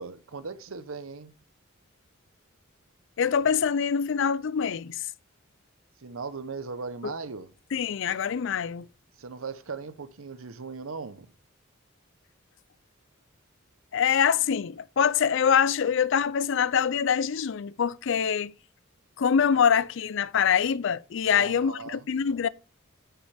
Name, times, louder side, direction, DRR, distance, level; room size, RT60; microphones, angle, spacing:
voice 1, 0.0-1.3 6.0-7.5 9.2-11.3 21.3-22.1, right 4 dB, 85° right, 0.8 m, -38 dB
voice 2, 3.2-5.1 7.0-7.1 7.7-8.9 13.9-18.5 19.2-22.5, left 7 dB, 65° left, 0.4 m, -24 dB
9.8 x 5.8 x 3.4 m
head